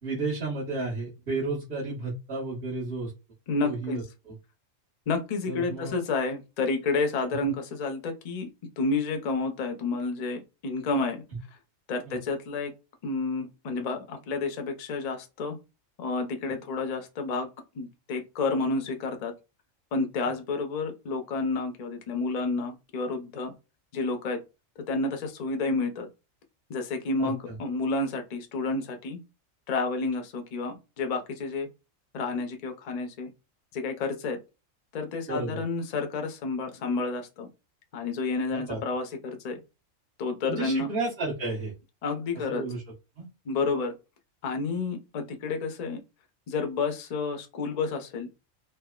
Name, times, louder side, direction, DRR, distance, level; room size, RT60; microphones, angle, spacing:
voice 1, 0.0-3.1 3.6-4.4 5.5-5.9 7.3-7.5 12.0-12.2 27.2-27.6 35.3-35.6 38.5-38.8 40.5-41.7 42.3-42.8 43.2-43.3, right 3 dB, 50° right, -9 dB, 1.3 m, -32 dB
voice 2, 3.5-4.0 5.1-8.5 8.8-11.2 11.9-12.7 13.0-15.6 16.0-17.5 17.7-19.3 19.9-23.5 23.9-24.4 24.9-26.1 26.7-29.2 29.7-31.7 32.1-33.3 33.7-34.4 34.9-37.5 37.9-39.6 40.2-40.9 42.0-42.6 43.5-43.9 44.4-46.0 46.5-48.3, left 3 dB, 55° left, 5 dB, 0.4 m, -30 dB
3.3 x 2.0 x 2.2 m, 0.27 s
omnidirectional pair, 1.4 m